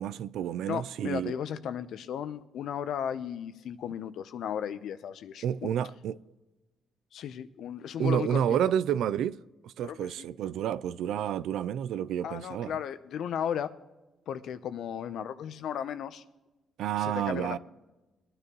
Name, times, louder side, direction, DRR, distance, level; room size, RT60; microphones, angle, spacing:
voice 1, 0.0-1.3 5.4-6.2 8.0-12.8 16.8-17.6, right 9 dB, 80° right, 0.4 m, -30 dB
voice 2, 0.7-5.7 7.1-8.4 9.8-10.3 12.2-13.7 14.3-16.2 17.0-17.6, left 9 dB, 75° left, 0.8 m, -35 dB
20.5 x 10.0 x 3.1 m
cardioid pair, 90°, 0 cm